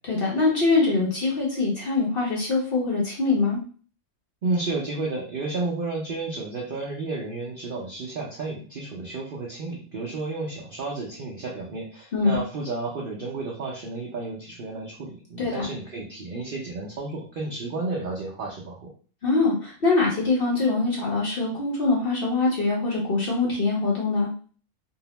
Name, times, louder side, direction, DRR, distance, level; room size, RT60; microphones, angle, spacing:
voice 1, 0.1-3.6 12.1-12.4 15.4-15.7 19.2-24.3, left 3 dB, 50° left, -3 dB, 0.7 m, -23 dB
voice 2, 4.4-18.9, right 3 dB, 65° right, -3 dB, 0.5 m, -32 dB
2.7 x 2.0 x 2.9 m, 0.41 s
omnidirectional pair, 1.6 m